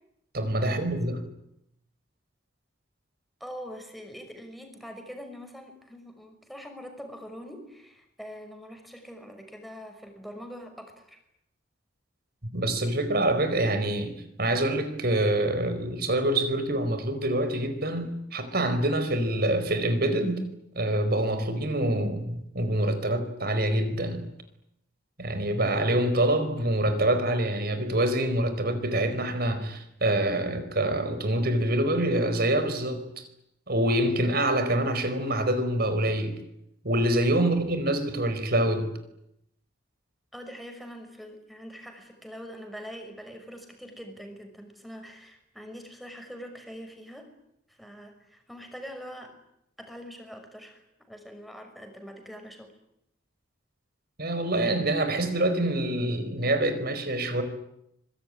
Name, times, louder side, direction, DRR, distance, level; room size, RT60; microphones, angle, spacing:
voice 1, 0.3-1.2 12.5-24.2 25.2-33.3 33.7-36.4 36.8-38.9 54.2-57.4, right 1 dB, 50° right, 4.6 m, -26 dB
voice 2, 3.4-11.2 37.4-37.6 40.3-47.3 47.7-49.4 49.8-52.7, equal, ahead, 5.9 m, -43 dB
25.0 x 23.0 x 9.9 m
head